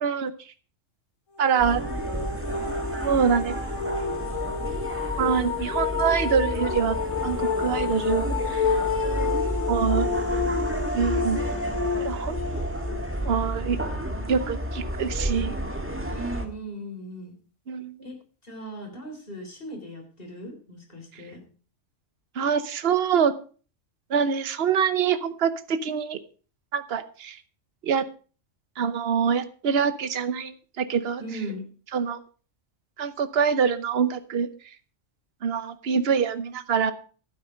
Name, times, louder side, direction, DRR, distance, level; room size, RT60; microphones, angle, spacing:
voice 1, 0.0-0.3 1.4-1.8 3.0-3.6 5.2-7.0 7.2-8.7 9.7-10.1 10.9-11.5 12.0-12.4 13.2-13.8 14.3-15.5 17.7-18.0 22.3-23.3 24.1-26.2 26.7-27.4 27.8-28.0 28.8-31.2 31.9-32.2 33.0-34.5 35.4-36.9, right 7 dB, 55° right, 12 dB, 1.1 m, -25 dB
sound 1, 1.4-14.2, left 5 dB, 80° left, 1.8 m, -30 dB
sound 2, 1.6-16.5, right 1 dB, 10° right, 1.4 m, -31 dB
voice 2, 16.1-17.4 18.0-18.2 18.4-21.4 31.2-31.7, right 1 dB, 45° left, 2 dB, 4.0 m, -38 dB
12.0 x 9.5 x 5.1 m, 0.40 s
omnidirectional pair, 1.3 m